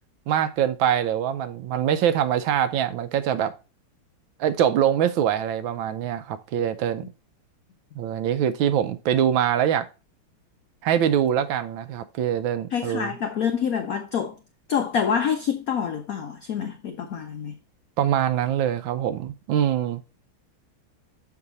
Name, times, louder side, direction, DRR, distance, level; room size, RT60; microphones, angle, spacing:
voice 1, 0.3-3.5 4.4-7.0 7.9-9.9 10.8-13.1 18.0-20.0, right 9 dB, 75° right, 1.2 m, -23 dB
voice 2, 12.7-14.4 14.7-17.5, left 7 dB, 85° left, 0.7 m, -26 dB
7.3 x 4.7 x 3.9 m
omnidirectional pair, 2.4 m